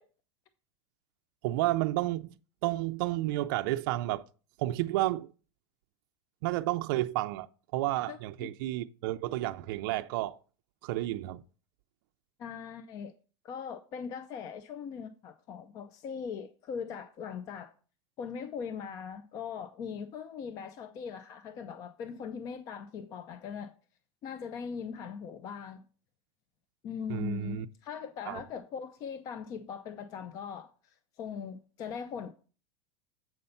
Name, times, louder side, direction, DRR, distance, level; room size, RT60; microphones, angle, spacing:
voice 1, 1.4-2.4 2.6-4.2 4.6-5.3 6.4-7.5 7.7-10.4 10.8-11.4 27.1-27.7 28.3-28.4, right 16 dB, 55° right, 0.4 m, -31 dB
voice 2, 8.1-8.5 12.4-13.1 13.4-17.7 18.2-23.7 24.2-25.8 26.8-32.3, left 6 dB, 25° left, 0.4 m, -40 dB
7.7 x 5.3 x 5.6 m
supercardioid pair, 170°, 14 cm